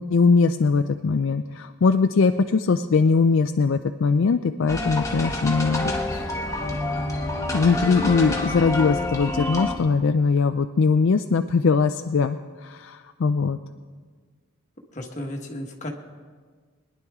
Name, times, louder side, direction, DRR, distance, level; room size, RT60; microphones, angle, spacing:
voice 1, 0.0-6.3 7.5-13.6, left 4 dB, 60° left, 8 dB, 0.4 m, -21 dB
sound 1, 4.7-9.8, left 2 dB, 15° left, 1.2 m, -28 dB
voice 2, 14.9-15.9, left 1 dB, 35° left, 1 dB, 1.4 m, -33 dB
22.0 x 10.5 x 3.6 m, 1.5 s
head